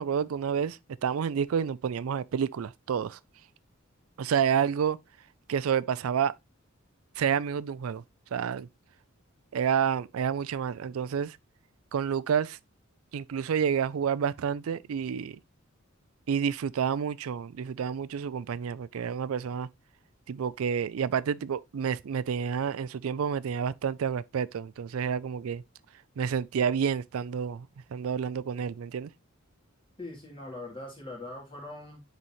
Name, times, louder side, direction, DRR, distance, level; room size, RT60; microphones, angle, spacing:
voice 1, 0.0-3.2 4.2-5.0 5.5-6.3 7.2-8.0 8.3-8.7 9.5-11.4 11.9-12.6 13.1-15.4 16.3-19.7 20.3-25.6 26.2-29.1, right 7 dB, 85° right, 0.4 m, -29 dB
voice 2, 30.0-32.0, left 2 dB, 25° left, 3.2 m, -41 dB
9.7 x 4.1 x 3.0 m
head